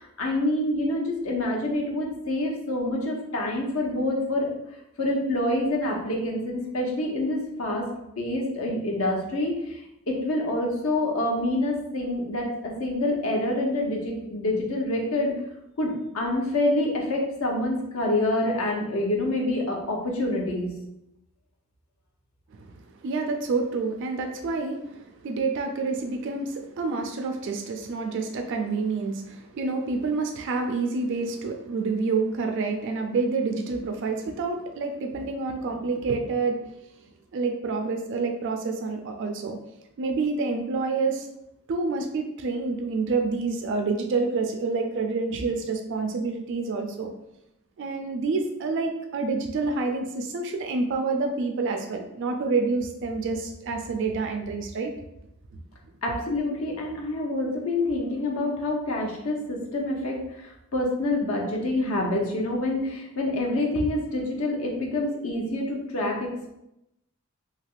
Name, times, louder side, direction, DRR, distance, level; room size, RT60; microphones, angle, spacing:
voice 1, 0.0-4.5 5.0-7.8 8.2-15.3 15.8-20.7 56.0-66.5, left 1 dB, 70° left, 0 dB, 0.7 m, -27 dB
voice 2, 23.0-36.6 37.3-39.6 40.0-41.3 41.7-47.1 47.8-54.9, right 4 dB, 60° right, 3 dB, 0.3 m, -28 dB
3.3 x 2.7 x 2.4 m, 0.84 s
head